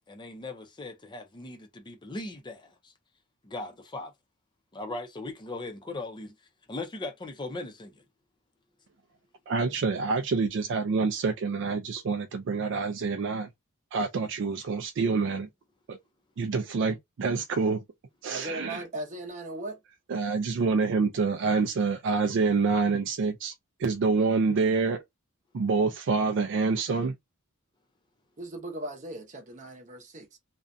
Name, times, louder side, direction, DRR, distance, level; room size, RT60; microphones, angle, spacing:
voice 1, 0.1-2.9 3.4-4.1 4.7-6.3 6.7-8.0, left 2 dB, 20° left, 0.4 m, -39 dB
voice 2, 9.5-13.5 13.9-15.5 15.9-16.0 16.4-17.8 18.2-18.8 20.1-23.5 23.8-25.0 25.5-27.2, right 4 dB, 55° right, 0.4 m, -27 dB
voice 3, 18.3-19.8 28.4-30.4, right 1 dB, 35° right, 0.7 m, -38 dB
2.5 x 2.1 x 2.5 m
head